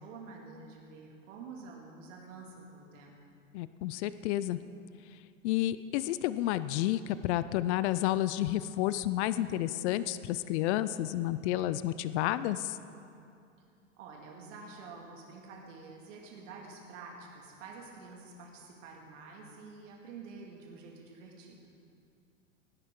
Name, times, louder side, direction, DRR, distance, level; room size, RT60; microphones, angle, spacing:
voice 1, 0.0-3.2 14.0-21.6, right 4 dB, 70° right, -1 dB, 2.4 m, -48 dB
voice 2, 3.5-4.6 5.4-12.8, left 14 dB, 60° left, 14 dB, 0.6 m, -30 dB
18.5 x 10.0 x 3.8 m, 2.5 s
hypercardioid pair, 105°, 39 cm